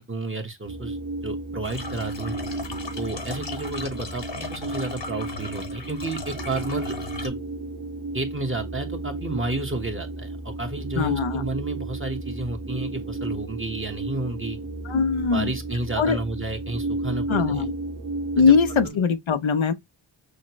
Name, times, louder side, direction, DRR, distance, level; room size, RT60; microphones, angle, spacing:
voice 1, 0.0-2.4 2.9-7.4 8.1-14.6 15.3-17.7 18.4-18.6 18.8-19.0, right 2 dB, 25° right, 1.1 m, -31 dB
sound 1, 0.6-18.9, right 2 dB, 50° right, 1.5 m, -33 dB
sound 2, 1.6-7.3, left 3 dB, 60° left, 1.1 m, -37 dB
voice 2, 11.0-11.4 14.9-15.5 16.0-16.2 17.3-17.7 18.4-19.7, left 5 dB, 75° left, 0.7 m, -21 dB
6.4 x 2.2 x 3.0 m
wide cardioid pair, 50°, 47 cm